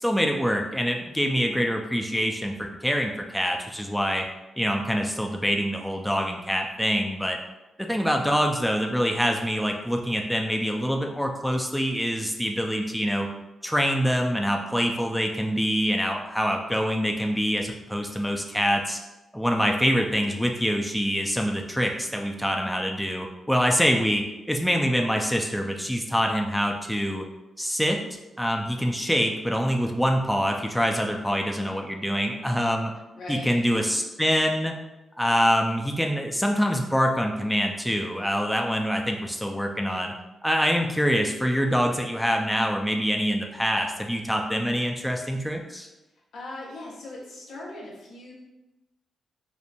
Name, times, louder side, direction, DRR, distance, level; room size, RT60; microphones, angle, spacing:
voice 1, 0.0-4.3 4.6-7.4 7.8-13.3 13.6-19.0 19.3-27.2 27.6-28.0 28.4-32.9 33.3-34.8 35.2-40.1 40.4-45.9, equal, 5° left, 2 dB, 0.4 m, -25 dB
voice 2, 33.1-33.8 46.3-48.3, left 2 dB, 80° left, -5 dB, 0.8 m, -39 dB
2.9 x 2.1 x 2.5 m, 1.0 s
supercardioid pair, 45°, 0 cm